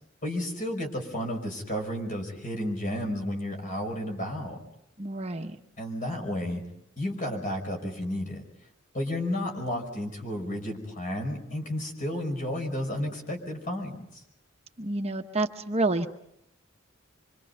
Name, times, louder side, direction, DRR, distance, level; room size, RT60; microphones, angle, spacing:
voice 1, 0.2-4.6 5.8-6.6 7.0-8.4 8.9-14.2, left 1 dB, 40° left, 3 dB, 5.4 m, -32 dB
voice 2, 5.0-5.6 14.8-16.1, right 2 dB, 30° right, 6 dB, 1.0 m, -28 dB
26.5 x 25.0 x 5.5 m, 0.76 s
head